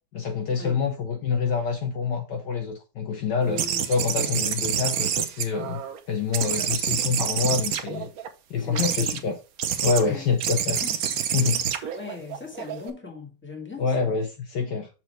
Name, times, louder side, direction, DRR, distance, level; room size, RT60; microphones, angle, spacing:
voice 1, 0.1-5.8 6.1-8.1 8.5-9.3 9.8-10.8 11.3-11.6 13.8-14.9, left 5 dB, 65° left, 1.2 m, -26 dB
voice 2, 3.4-4.3 6.4-6.7 8.6-9.2 10.0-10.3 10.8-11.2 11.8-14.2, left 4 dB, 5° left, 1.6 m, -40 dB
sound 1, 3.6-6.0 6.3-8.3 8.7-9.2 9.6-10.0 10.4-12.9, right 8 dB, 65° right, 0.9 m, -27 dB
6.7 x 4.4 x 4.4 m
omnidirectional pair, 2.4 m